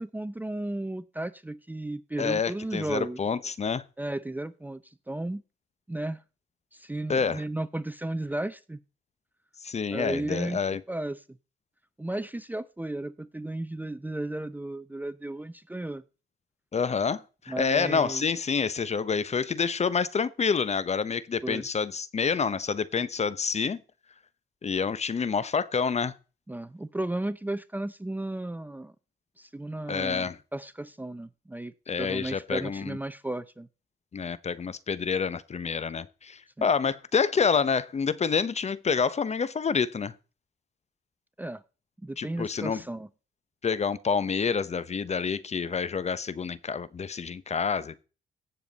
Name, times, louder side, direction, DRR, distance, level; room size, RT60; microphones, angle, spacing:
voice 1, 0.0-3.2 4.0-5.4 5.9-6.2 6.7-8.8 9.9-10.6 10.9-11.2 12.0-16.0 17.5-18.2 21.4-21.6 26.5-28.9 29.4-33.7 36.6-36.7 41.4-41.6 42.0-43.1, right 1 dB, 10° right, 0.6 m, -34 dB
voice 2, 2.2-3.8 7.1-7.4 9.6-10.8 16.7-23.8 24.6-26.1 29.9-30.4 31.9-33.0 34.1-40.1 42.2-42.8 43.6-48.0, left 5 dB, 35° left, 0.8 m, -28 dB
17.0 x 7.0 x 4.0 m
cardioid pair, 90°, 20 cm